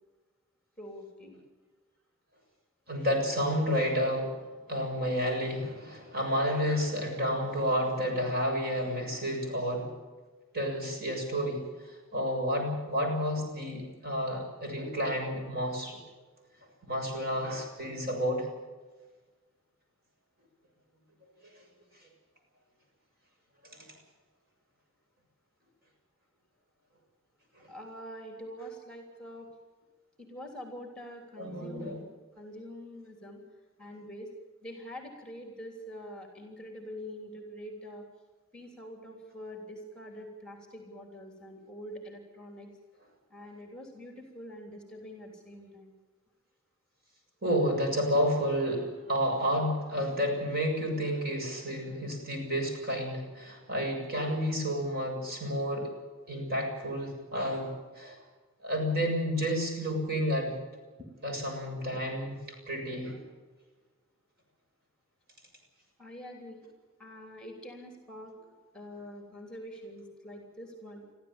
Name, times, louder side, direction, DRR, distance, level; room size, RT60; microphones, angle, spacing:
voice 1, 0.8-1.4 27.7-29.5 30.2-32.0 32.3-33.4 33.8-34.3 34.6-38.0 38.5-42.7 43.3-45.9 66.0-66.7 67.0-68.5 68.7-71.0, equal, 5° left, 3 dB, 3.3 m, -45 dB
voice 2, 2.9-4.4 4.7-9.9 10.5-16.0 16.9-18.5 21.4-21.5 23.6-23.9 27.6-27.7 31.4-32.0 47.4-55.9 56.3-58.2 58.6-60.6 61.2-62.4 62.7-63.2, equal, 50° right, 1 dB, 7.1 m, -30 dB
23.0 x 14.5 x 8.9 m, 1.3 s
head